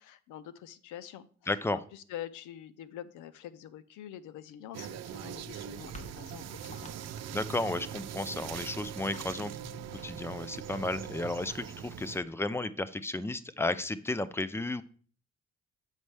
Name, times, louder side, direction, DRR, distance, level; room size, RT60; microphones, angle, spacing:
voice 1, 0.0-6.9, left 11 dB, 80° left, 15 dB, 0.6 m, -46 dB
voice 2, 1.5-1.8 7.3-9.5 10.0-14.8, left 2 dB, 10° left, 15 dB, 0.4 m, -33 dB
sound 1, 4.7-12.2, right 10 dB, 60° right, 0.5 m, -42 dB
sound 2, 4.9-12.3, left 1 dB, 25° left, 1.1 m, -53 dB
7.4 x 5.2 x 3.3 m, 0.44 s
cardioid pair, 90°, 30 cm